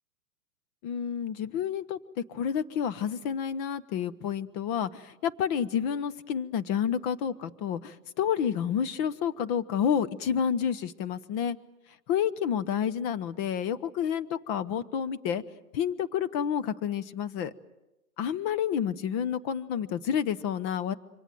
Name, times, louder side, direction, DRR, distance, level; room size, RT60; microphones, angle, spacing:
voice 1, 0.8-11.6 12.1-15.4 15.7-17.5 18.2-20.9, left 8 dB, 25° left, 13 dB, 0.8 m, -29 dB
26.5 x 24.0 x 7.6 m, 0.99 s
hypercardioid pair, 130°, 47 cm